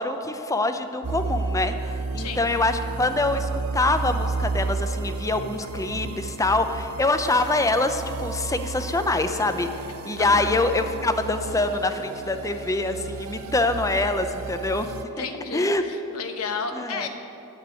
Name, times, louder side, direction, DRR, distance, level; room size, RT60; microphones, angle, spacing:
voice 1, 0.0-1.7 2.1-9.7 10.0-15.3 15.5-15.8 16.7-17.1, left 2 dB, 15° left, 8 dB, 0.6 m, -25 dB
sound 1, 1.0-15.0, right 4 dB, 70° right, 0.6 m, -32 dB
voice 2, 2.2-2.5 10.2-10.6 15.0-17.1, left 4 dB, 75° left, 6 dB, 1.1 m, -32 dB
9.7 x 8.0 x 9.0 m, 2.9 s
head